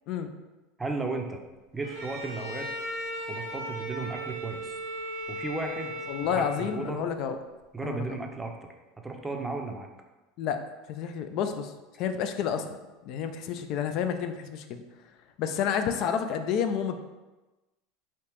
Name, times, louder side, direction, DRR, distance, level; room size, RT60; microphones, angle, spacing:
voice 1, 0.8-1.4 1.7-2.7 3.3-4.7 5.3-5.9 6.3-7.0 7.7-8.7 9.0-9.9, right 3 dB, 10° right, 3 dB, 0.5 m, -34 dB
Bowed string instrument, 1.8-7.1, equal, 85° right, 0.8 m, -37 dB
voice 2, 6.1-7.4 7.8-8.0 10.4-10.6 10.9-12.7 13.0-14.8 15.4-17.0, left 7 dB, 55° left, 8 dB, 0.3 m, -30 dB
3.3 x 2.8 x 3.0 m, 1.1 s
supercardioid pair, 100°, 0 cm